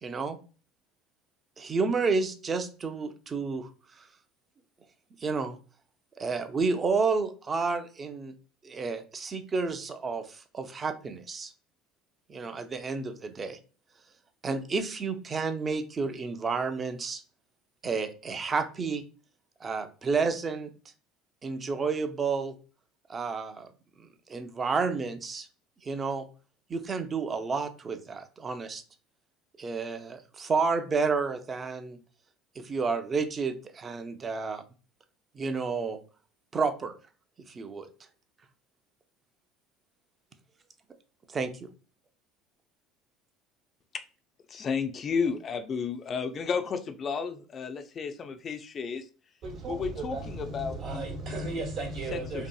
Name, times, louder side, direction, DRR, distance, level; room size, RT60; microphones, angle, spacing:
voice 1, 0.0-0.4 1.6-3.7 4.0-4.1 5.2-5.6 6.2-8.3 8.6-11.5 12.3-13.6 14.4-17.2 17.8-19.0 19.6-20.7 21.4-22.6 23.1-23.7 24.0-25.5 25.8-26.3 26.7-28.8 29.6-32.0 32.6-34.6 35.3-36.0 36.5-36.9 37.5-37.9 41.3-41.7, right 4 dB, 30° right, 9 dB, 0.4 m, -30 dB
voice 2, 44.5-49.1 49.7-51.0 52.1-52.5, left 5 dB, 40° left, 8 dB, 0.3 m, -32 dB
voice 3, 49.4-52.5, right 2 dB, 60° right, -1 dB, 0.9 m, -35 dB
2.7 x 2.5 x 2.2 m, 0.37 s
hypercardioid pair, 70°, 0 cm